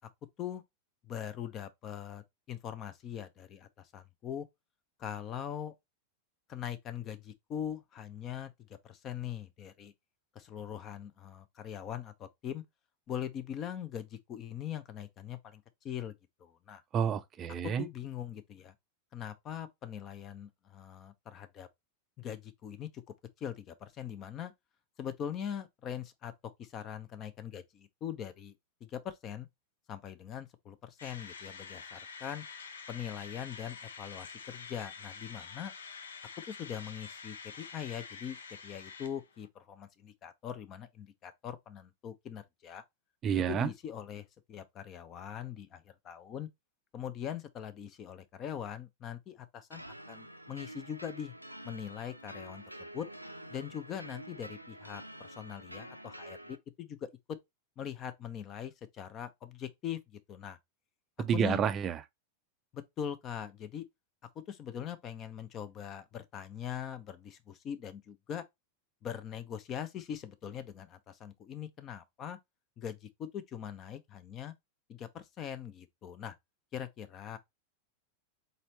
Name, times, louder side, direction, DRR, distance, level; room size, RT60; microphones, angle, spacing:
voice 1, 1.0-4.5 5.0-5.7 6.5-9.9 10.3-12.6 13.1-16.1 16.4-16.8 17.6-18.7 19.1-21.7 22.2-23.0 23.4-24.5 25.0-26.3 26.6-28.5 28.8-29.5 29.9-32.4 32.9-35.7 36.4-42.8 43.5-46.5 46.9-51.3 51.6-52.6 52.9-53.1 53.5-57.4 57.8-60.6 61.3-61.6 62.7-63.8 64.3-68.4 69.0-72.4 72.8-74.5 74.9-76.3 76.7-77.4, left 9 dB, 30° left, 0.7 m, -41 dB
voice 2, 16.9-17.9 43.2-43.7 61.2-62.0, right 8 dB, 25° right, 0.4 m, -29 dB
sound 1, 31.0-39.5, left 5 dB, 65° left, 0.7 m, -47 dB
sound 2, 49.7-56.6, right 1 dB, 90° right, 0.5 m, -48 dB
4.1 x 4.0 x 3.2 m
figure-of-eight pair, 90°, 0 cm